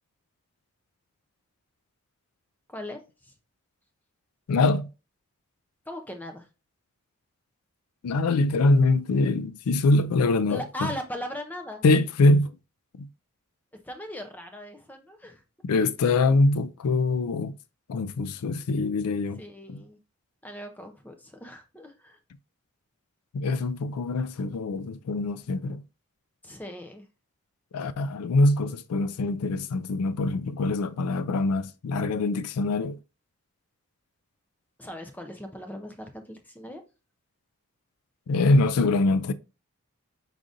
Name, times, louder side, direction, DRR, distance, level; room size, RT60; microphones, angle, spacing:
voice 1, 2.7-3.3 5.9-6.5 10.5-11.8 13.8-15.4 19.4-20.0 20.4-22.2 26.4-27.0 34.8-36.8, equal, 10° left, 0.6 m, -39 dB
voice 2, 4.5-4.9 8.0-10.6 11.8-12.5 13.0-13.1 15.6-17.5 17.9-19.4 19.7-19.8 23.3-25.8 27.7-33.0 38.3-39.3, left 2 dB, 90° left, 0.4 m, -23 dB
4.9 x 3.8 x 2.5 m
head